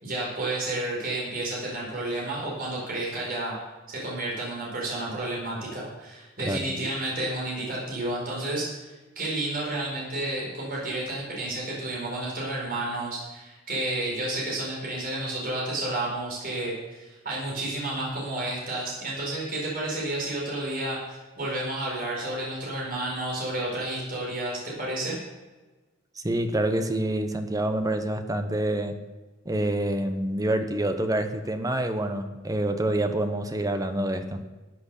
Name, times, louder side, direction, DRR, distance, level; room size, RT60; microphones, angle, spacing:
voice 1, 0.0-3.6 3.9-25.2, right 2 dB, 45° right, -3 dB, 4.7 m, -31 dB
voice 2, 6.4-6.7 26.2-29.0 29.4-34.4, right 1 dB, 20° right, 8 dB, 1.0 m, -27 dB
13.5 x 7.9 x 6.7 m, 1.2 s
head